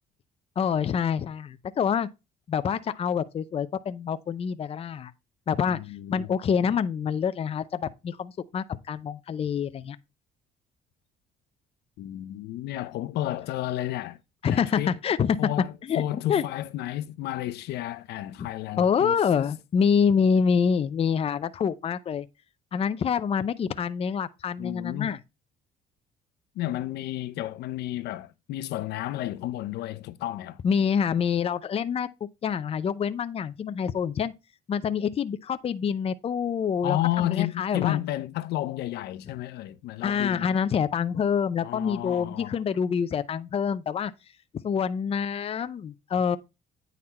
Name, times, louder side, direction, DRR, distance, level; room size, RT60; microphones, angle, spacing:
voice 1, 0.6-2.1 2.5-5.1 5.5-5.8 6.1-10.0 14.4-15.4 15.9-16.0 16.3-16.4 18.4-18.5 18.8-22.3 22.7-25.2 30.6-32.1 32.4-34.3 34.7-38.0 40.0-44.1 44.6-46.4, left 7 dB, 35° left, 0.6 m, -26 dB
voice 2, 5.7-6.3 12.0-14.2 14.5-14.9 15.4-19.5 24.6-25.1 26.6-30.6 36.8-40.5 41.6-42.6, left 14 dB, 80° left, 0.7 m, -32 dB
9.4 x 4.1 x 4.2 m
cardioid pair, 110°, 17 cm